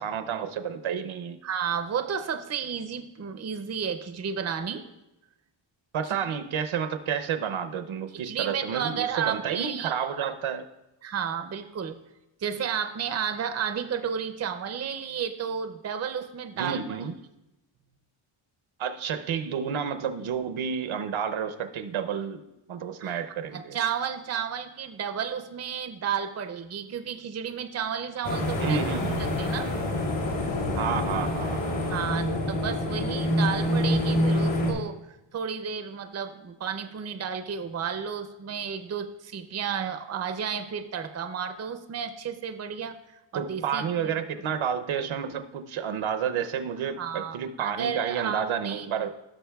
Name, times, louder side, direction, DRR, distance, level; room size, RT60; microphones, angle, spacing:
voice 1, 0.0-1.4 5.9-10.7 16.6-17.2 18.8-22.4 22.7-23.8 28.6-29.3 30.8-31.9 43.3-49.1, right 7 dB, 75° right, 9 dB, 0.7 m, -30 dB
voice 2, 1.4-4.8 6.3-6.4 8.2-9.9 11.0-12.0 12.4-16.8 23.0-23.2 23.5-28.8 29.2-29.7 31.9-35.0 35.3-44.2 47.0-48.9, right 7 dB, 35° right, 8 dB, 0.5 m, -32 dB
sound 1, 28.2-34.7, left 1 dB, 75° left, 1.9 m, -26 dB
16.0 x 6.1 x 2.3 m, 0.94 s
wide cardioid pair, 145°, 48 cm